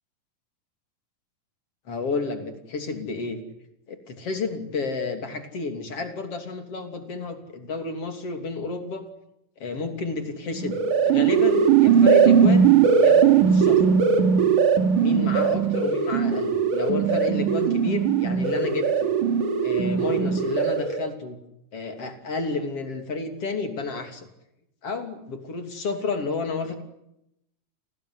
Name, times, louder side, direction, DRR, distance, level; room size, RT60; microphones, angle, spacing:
voice 1, 1.9-3.4 3.9-9.1 9.6-14.0 15.0-19.1 19.6-21.4 21.7-24.3 24.8-26.8, left 4 dB, 45° left, 7 dB, 3.8 m, -31 dB
sound 1, 10.6-21.1, right 7 dB, 70° right, 3.9 m, -19 dB
29.0 x 19.5 x 9.7 m, 0.84 s
omnidirectional pair, 3.8 m